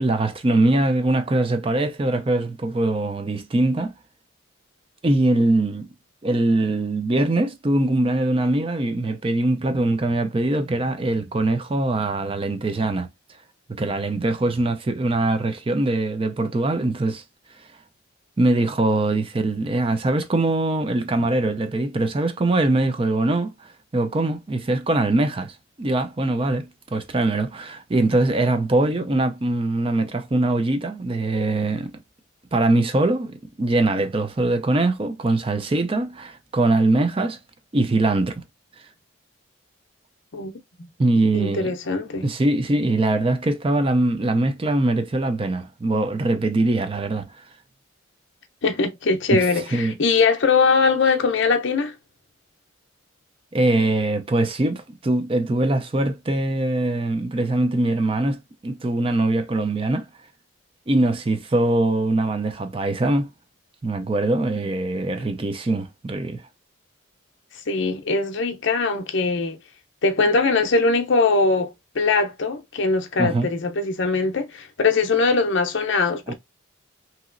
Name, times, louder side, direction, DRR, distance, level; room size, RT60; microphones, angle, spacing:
voice 1, 0.0-3.9 5.0-5.9 6.2-13.1 13.7-17.2 18.4-31.9 32.5-37.4 37.7-38.4 41.0-41.7 42.2-47.3 49.3-49.4 49.7-50.0 53.5-60.1 60.9-63.3 63.8-66.4 73.2-73.5 76.3-76.4, right 2 dB, 25° right, 0.4 m, -22 dB
voice 2, 41.3-42.3 48.6-51.9 67.7-69.6 70.0-76.3, left 4 dB, 60° left, 0.6 m, -21 dB
2.9 x 2.9 x 2.5 m
head